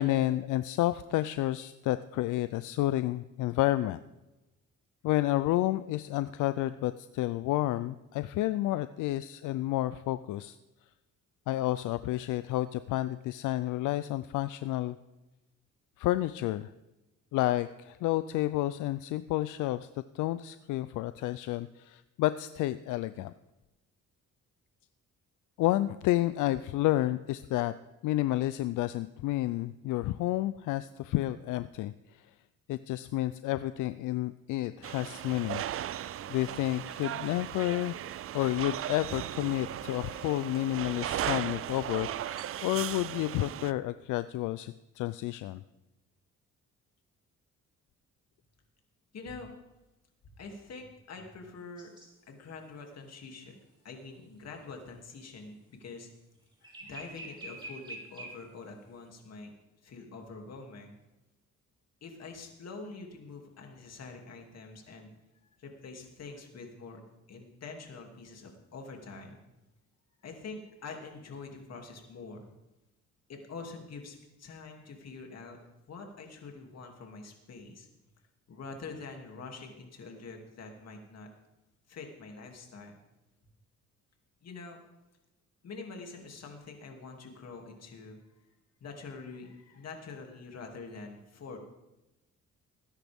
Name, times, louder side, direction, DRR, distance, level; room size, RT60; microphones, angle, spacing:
voice 1, 0.0-4.0 5.0-10.6 11.5-15.0 16.0-16.7 17.3-19.9 20.1-23.3 25.6-27.7 28.0-32.3 32.7-38.0 38.3-45.6, left 15 dB, 85° left, 13 dB, 0.5 m, -30 dB
sound 1, 34.8-43.7, right 11 dB, 50° right, 0.4 m, -37 dB
voice 2, 49.1-49.5 50.3-51.9 52.3-53.6 53.8-56.1 56.6-59.5 59.8-61.0 62.0-65.1 65.6-67.0 67.3-69.4 70.2-72.5 73.3-75.6 75.9-77.9 78.5-81.3 81.9-83.0 84.4-84.8 85.6-88.5 88.8-91.6, left 4 dB, 55° left, 2 dB, 2.7 m, -45 dB
sound 2, 51.8-52.1 56.6-58.5, right 2 dB, 15° right, 4.0 m, -45 dB
19.5 x 10.0 x 3.6 m, 0.99 s
cardioid pair, 90°, 30 cm